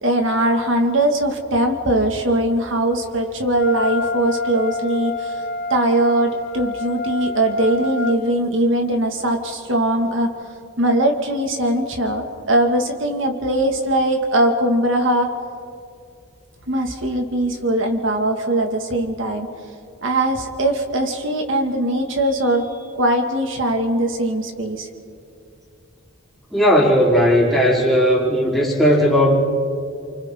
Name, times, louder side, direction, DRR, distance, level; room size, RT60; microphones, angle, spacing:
voice 1, 0.0-5.4 5.7-10.3 10.8-15.3 16.7-19.5 20.0-22.7 22.9-24.9, right 1 dB, 70° right, 3 dB, 2.0 m, -20 dB
Wind instrument woodwind instrument, 3.6-8.2, left 2 dB, 55° left, 2.4 m, -27 dB
voice 2, 26.5-29.4, equal, ahead, -6 dB, 3.8 m, -16 dB
29.0 x 24.5 x 3.8 m, 2.4 s
head